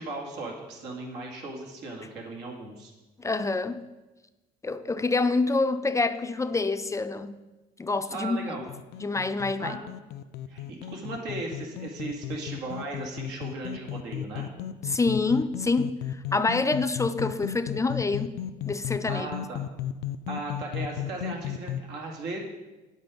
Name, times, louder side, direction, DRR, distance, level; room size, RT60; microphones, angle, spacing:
voice 1, 0.0-2.9 8.1-8.6 9.6-9.8 10.5-14.5 19.1-19.6 20.3-22.4, right 2 dB, 90° right, 2.4 m, -37 dB
voice 2, 3.2-3.8 4.6-7.3 7.8-8.5 9.0-9.8 14.8-18.4 18.7-19.3, left 3 dB, 20° left, 0.4 m, -27 dB
sound 1, 8.7-21.8, left 10 dB, 75° left, 0.4 m, -35 dB
8.5 x 8.2 x 5.1 m
cardioid pair, 110°, 17 cm